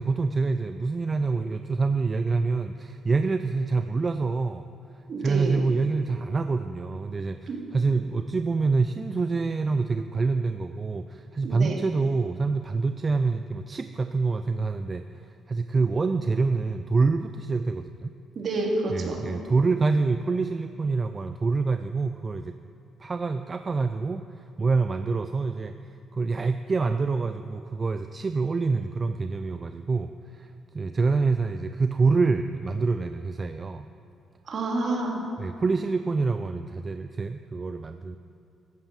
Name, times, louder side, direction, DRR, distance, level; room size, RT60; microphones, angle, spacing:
voice 1, 0.0-4.6 5.2-15.0 15.5-18.1 18.9-22.6 23.0-24.2 24.6-25.7 26.1-33.9 35.4-38.2, right 4 dB, 30° right, 9 dB, 0.4 m, -26 dB
voice 2, 5.1-5.6 7.5-7.6 11.4-11.8 18.3-19.2 34.4-35.2, right 2 dB, 55° right, -1 dB, 2.8 m, -28 dB
13.0 x 8.8 x 7.5 m, 2.6 s
cardioid pair, 100°, 0 cm